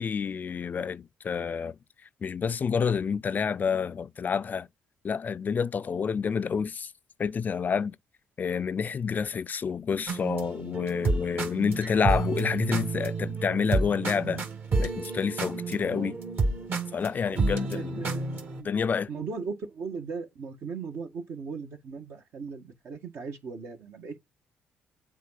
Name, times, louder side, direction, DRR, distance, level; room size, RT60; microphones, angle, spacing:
voice 1, 0.0-1.7 2.2-4.7 5.0-6.9 7.2-8.0 8.4-14.5 14.8-16.2 16.9-18.0 18.6-19.1, left 6 dB, 40° left, 0.4 m, -28 dB
sound 1, 10.1-18.6, right 3 dB, 55° right, 2.1 m, -30 dB
voice 2, 17.2-18.7 19.1-24.2, right 5 dB, 70° right, 1.8 m, -38 dB
7.5 x 3.8 x 5.7 m
cardioid pair, 80°, 4 cm